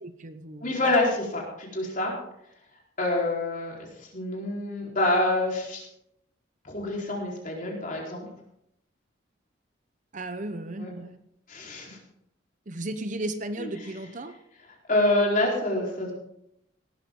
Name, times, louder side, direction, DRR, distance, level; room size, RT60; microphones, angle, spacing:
voice 1, 0.0-0.8 10.1-11.2 12.7-14.4, right 1 dB, 40° right, 9 dB, 0.9 m, -35 dB
voice 2, 0.6-2.2 3.0-5.9 6.6-8.3 10.8-10.9 11.5-12.0 13.6-13.7 14.9-16.1, left 2 dB, 45° left, -2 dB, 4.2 m, -27 dB
17.5 x 12.5 x 3.8 m, 0.77 s
head